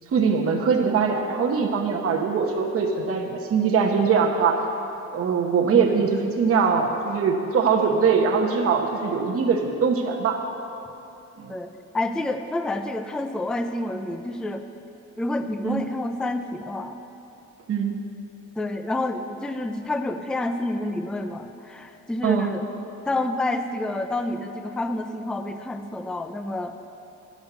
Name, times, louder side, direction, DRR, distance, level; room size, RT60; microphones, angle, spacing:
voice 1, 0.1-4.6 5.1-10.4 11.4-11.5 15.6-15.8 17.7-18.0 22.2-22.5, right 5 dB, 50° right, 1 dB, 0.9 m, -22 dB
voice 2, 5.7-6.0 11.5-14.6 15.2-17.0 18.6-22.7 23.1-26.7, left 2 dB, 5° left, 7 dB, 0.4 m, -29 dB
9.4 x 6.3 x 6.7 m, 2.9 s
cardioid pair, 90°, 30 cm